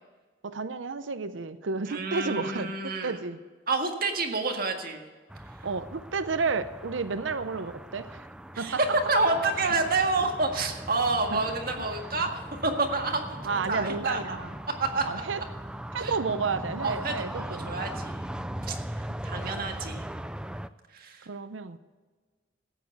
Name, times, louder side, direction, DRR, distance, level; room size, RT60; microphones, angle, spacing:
voice 1, 0.4-3.4 5.6-8.3 8.6-9.0 11.3-11.4 13.4-14.5 15.0-15.4 15.9-17.7 19.4-19.6 21.2-21.8, right 4 dB, 75° right, 12 dB, 0.7 m, -31 dB
voice 2, 1.9-3.2 3.7-5.0 8.5-8.8 9.1-14.4 14.8-15.0 16.0-16.1 16.8-18.3 18.7-20.0 20.9-21.3, right 3 dB, 50° right, 3 dB, 1.8 m, -29 dB
sound 1, 5.3-20.7, right 1 dB, 5° right, 0.3 m, -39 dB
14.0 x 9.4 x 6.6 m, 1.4 s
head